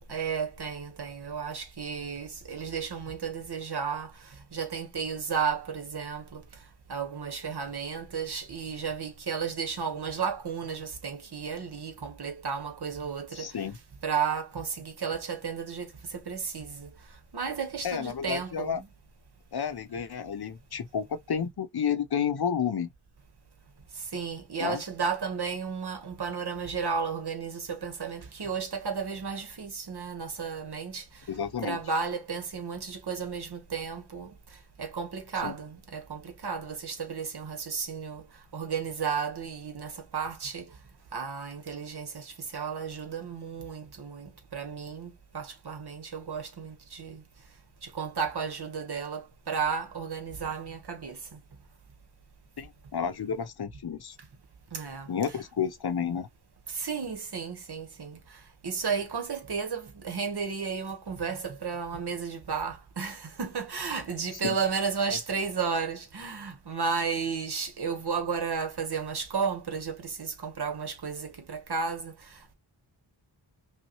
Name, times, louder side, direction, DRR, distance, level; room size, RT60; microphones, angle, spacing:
voice 1, 0.1-4.1 4.5-6.4 6.9-13.5 14.0-16.9 17.3-18.9 24.1-31.0 31.6-34.3 34.8-38.2 38.5-40.7 41.1-47.2 47.8-51.4 54.7-55.1 56.7-72.5, right 6 dB, 60° right, 1.1 m, -33 dB
voice 2, 13.3-13.8 17.8-18.8 19.5-22.9 24.6-24.8 31.3-31.8 35.4-35.5 52.6-54.1 55.1-56.3 64.4-64.5, left 7 dB, 55° left, 0.7 m, -31 dB
5.4 x 2.2 x 2.9 m
wide cardioid pair, 70°, 45 cm